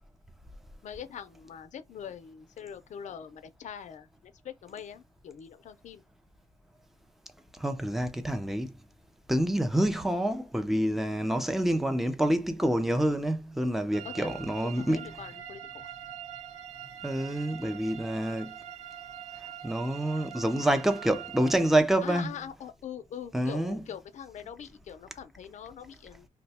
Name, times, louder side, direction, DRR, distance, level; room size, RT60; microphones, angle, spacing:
voice 1, 0.8-4.1 4.4-6.0 14.0-14.3 14.6-15.9 22.0-26.3, left 8 dB, 60° left, 0.5 m, -43 dB
voice 2, 7.6-8.7 9.3-15.1 17.0-18.5 19.6-22.3 23.3-23.8, right 1 dB, ahead, 0.5 m, -27 dB
sound 1, 13.9-21.8, right 10 dB, 60° right, 0.9 m, -44 dB
2.7 x 2.2 x 4.0 m
wide cardioid pair, 130°, 14 cm